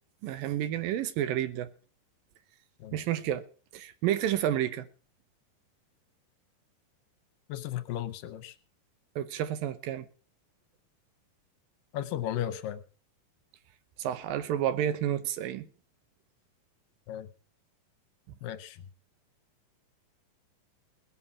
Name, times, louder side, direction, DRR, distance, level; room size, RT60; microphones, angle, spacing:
voice 1, 0.2-1.7 2.9-3.4 3.7-4.9 9.2-10.1 14.0-15.7, right 11 dB, 80° right, 2.7 m, -30 dB
voice 2, 7.5-8.5 11.9-12.8 17.1-17.3 18.4-18.8, left 11 dB, 75° left, 2.5 m, -35 dB
19.0 x 7.2 x 7.1 m
omnidirectional pair, 4.1 m